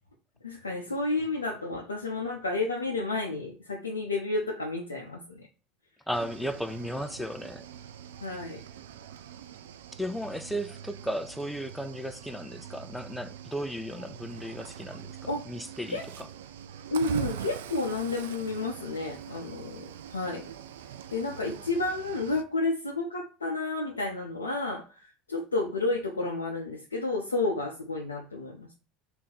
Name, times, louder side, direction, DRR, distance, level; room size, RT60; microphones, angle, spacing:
voice 1, 0.4-5.5 8.2-8.6 15.3-15.4 15.9-16.0 16.9-20.5 21.1-28.7, left 2 dB, 90° left, 0.5 m, -31 dB
voice 2, 6.1-7.7 10.0-16.3, equal, 5° left, 0.4 m, -35 dB
Cricket / Waves surf, 6.1-22.4, right 9 dB, 75° right, 0.3 m, -43 dB
3.6 x 2.6 x 4.1 m
hypercardioid pair, 70°, 0 cm